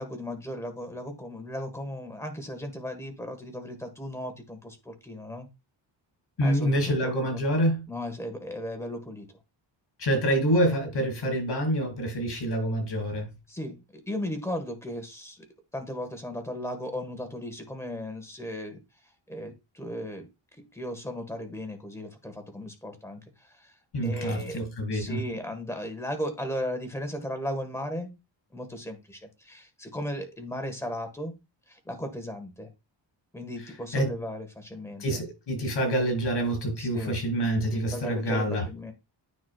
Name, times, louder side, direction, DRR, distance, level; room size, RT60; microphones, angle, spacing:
voice 1, 0.0-5.5 6.4-7.4 7.9-9.3 13.5-15.5 15.7-20.3 20.7-23.8 24.0-24.6 24.9-28.1 28.5-31.3 31.7-32.7 33.3-35.2 36.8-37.2 37.7-38.9, equal, 5° left, 1.5 m, -36 dB
voice 2, 6.4-7.8 10.0-13.3 23.9-25.2 33.9-34.1 35.0-38.7, right 1 dB, 60° left, 4.9 m, -26 dB
9.6 x 6.0 x 2.4 m
wide cardioid pair, 160°, 45 cm